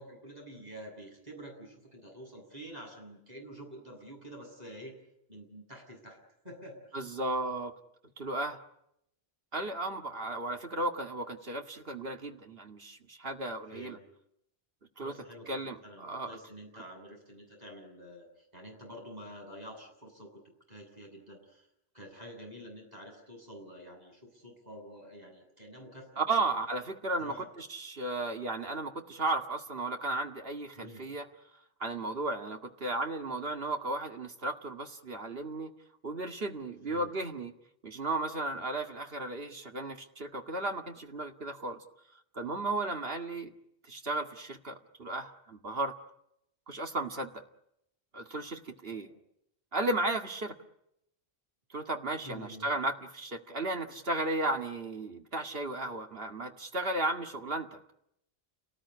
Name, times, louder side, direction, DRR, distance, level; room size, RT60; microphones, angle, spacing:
voice 1, 0.0-5.0 5.3-6.2 6.4-7.0 13.7-14.0 15.0-20.4 20.7-21.7 21.9-26.5 27.2-27.5 30.7-31.1 36.9-37.1 48.9-49.2 52.2-52.7, equal, 40° right, 1 dB, 8.3 m, -48 dB
voice 2, 6.9-7.7 8.2-8.6 9.5-14.0 15.0-15.1 15.5-16.4 16.7-16.8 26.2-31.3 31.8-35.7 36.0-37.5 37.8-41.8 42.3-43.5 43.9-45.9 46.7-47.4 48.1-49.1 49.7-50.5 51.7-57.8, right 2 dB, 65° right, 4 dB, 2.3 m, -34 dB
29.5 x 19.0 x 10.0 m, 0.80 s
omnidirectional pair, 1.1 m